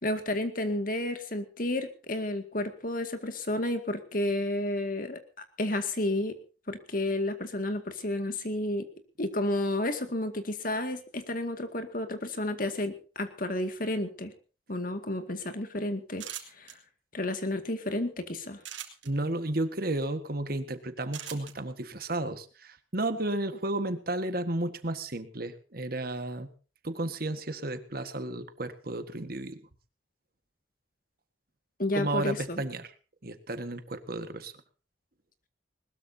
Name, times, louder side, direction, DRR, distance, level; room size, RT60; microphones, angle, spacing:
voice 1, 0.0-5.2 5.6-6.4 6.7-8.9 9.2-14.3 14.7-16.2 16.6-16.8 17.1-18.6 31.8-32.6, left 1 dB, 45° left, 8 dB, 2.1 m, -31 dB
sound 1, 16.1-16.7 18.6-19.1 21.1-21.5, right 11 dB, 75° right, 3.2 m, -40 dB
voice 2, 19.0-26.5 26.8-29.6 31.9-32.9 33.2-34.5, right 2 dB, 50° right, 10 dB, 1.6 m, -33 dB
20.5 x 20.5 x 2.8 m, 0.36 s
head